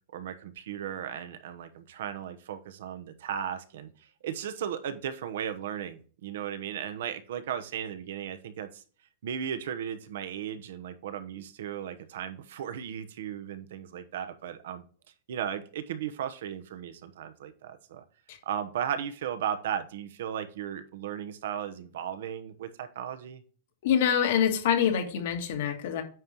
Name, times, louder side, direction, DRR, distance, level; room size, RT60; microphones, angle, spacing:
voice 1, 0.1-3.9 4.2-8.8 9.2-14.8 15.3-18.0 18.5-23.4, right 9 dB, 65° right, 10 dB, 1.0 m, -36 dB
voice 2, 23.8-26.0, left 8 dB, 55° left, 5 dB, 1.6 m, -25 dB
9.1 x 5.4 x 3.0 m, 0.40 s
supercardioid pair, 175°, 0 cm